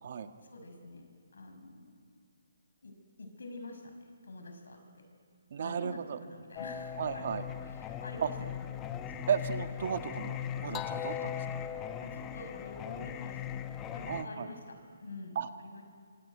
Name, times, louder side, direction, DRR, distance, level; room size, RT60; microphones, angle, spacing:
voice 1, 0.5-2.1 2.8-3.8 4.2-4.8 5.6-7.2 7.8-8.3 9.1-9.3 12.0-14.6 15.0-15.8, left 2 dB, 85° left, 5 dB, 5.7 m, -47 dB
voice 2, 5.5-6.2 7.0-7.5 8.2-8.3 9.3-11.4 14.1-14.5 15.3-15.5, right 7 dB, 45° right, 8 dB, 1.5 m, -34 dB
Singing, 6.6-14.2, left 9 dB, 15° left, 0.9 m, -39 dB
25.5 x 24.0 x 9.4 m, 2.2 s
hypercardioid pair, 165°, 0 cm